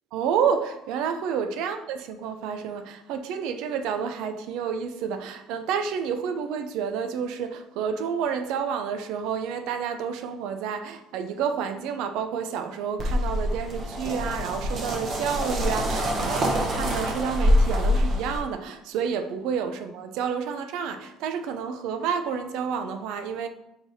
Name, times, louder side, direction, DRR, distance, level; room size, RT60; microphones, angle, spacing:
voice 1, 0.1-23.5, right 7 dB, 80° right, 0.4 m, -29 dB
sound 1, 13.0-18.4, equal, 50° right, 0.9 m, -25 dB
4.6 x 3.8 x 2.7 m
cardioid pair, 100°, 0 cm